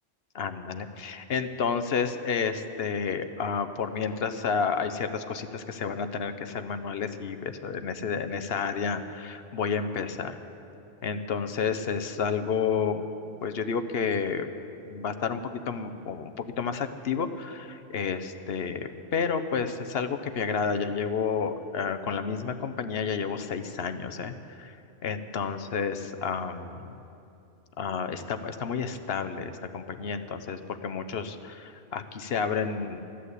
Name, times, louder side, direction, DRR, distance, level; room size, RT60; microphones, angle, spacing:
voice 1, 0.3-10.4 11.0-13.1 13.4-14.5 14.8-24.8 25.0-27.0 27.8-33.0, left 6 dB, 55° left, 9 dB, 0.9 m, -30 dB
14.5 x 11.0 x 8.2 m, 2.7 s
omnidirectional pair, 1.3 m